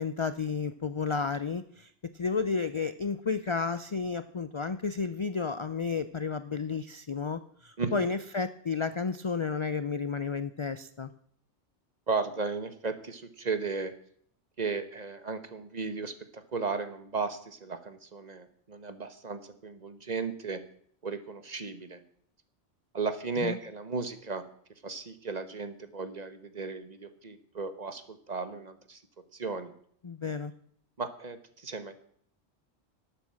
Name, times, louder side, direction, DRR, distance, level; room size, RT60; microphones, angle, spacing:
voice 1, 0.0-11.1 23.4-23.6 30.0-30.5, left 5 dB, 45° left, 13 dB, 0.4 m, -32 dB
voice 2, 12.1-13.9 14.6-20.6 21.0-22.0 22.9-24.4 24.8-29.0 29.3-29.7 31.0-31.9, right 4 dB, 40° right, 10 dB, 1.2 m, -35 dB
12.0 x 8.9 x 7.5 m, 0.63 s
omnidirectional pair, 1.2 m